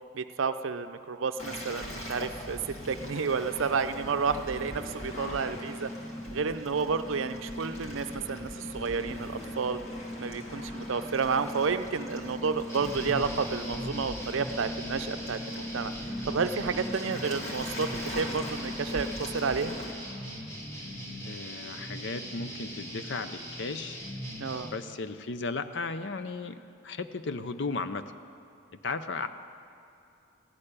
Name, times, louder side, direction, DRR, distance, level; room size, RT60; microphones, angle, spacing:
voice 1, 0.1-2.6 2.9-5.9 6.3-9.8 10.2-15.9 16.3-19.1 19.3-19.8 24.4-24.7, right 5 dB, 70° right, 10 dB, 0.5 m, -31 dB
Waves surf, 1.4-19.9, left 1 dB, 35° left, 1.7 m, -39 dB
sound 1, 12.7-24.7, equal, 15° left, 1.4 m, -41 dB
voice 2, 21.2-24.0 24.7-26.6 26.8-28.1 28.8-29.3, left 3 dB, 55° left, 11 dB, 0.5 m, -35 dB
15.0 x 6.7 x 9.9 m, 2.6 s
head